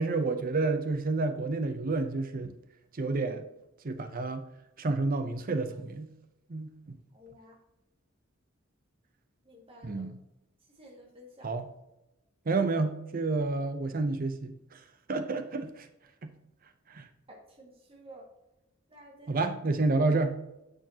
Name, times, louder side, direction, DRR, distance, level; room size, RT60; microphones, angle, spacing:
voice 1, 0.0-2.6 3.0-3.4 3.8-4.5 4.8-6.1 6.5-7.0 9.8-10.2 11.4-11.6 12.5-14.8 15.1-15.9 16.2-16.3 16.9-17.1 19.3-20.3, right 3 dB, 45° right, 8 dB, 0.6 m, -29 dB
voice 2, 7.1-7.6 9.4-10.0 10.8-11.5 15.1-15.3 17.3-18.3 18.9-19.4, equal, 30° right, -2 dB, 1.9 m, -52 dB
8.8 x 6.3 x 2.8 m, 0.92 s
head